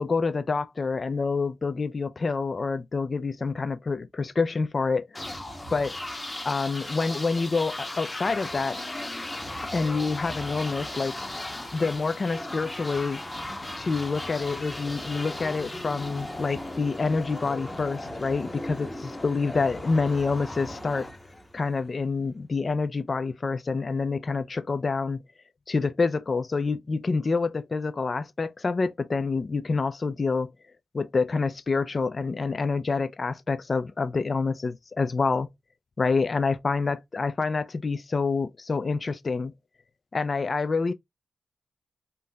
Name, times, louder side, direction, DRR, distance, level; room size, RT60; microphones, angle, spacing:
voice 1, 0.0-5.4 5.7-6.0 6.4-8.8 9.7-11.1 11.7-13.2 13.8-21.1 21.5-25.2 25.7-30.5 30.9-35.5 36.0-39.5 40.1-40.9, left 4 dB, 50° left, 0.4 m, -27 dB
sound 1, 5.1-21.9, left 1 dB, 25° left, 1.0 m, -37 dB
3.7 x 2.7 x 2.2 m
supercardioid pair, 40°, 0 cm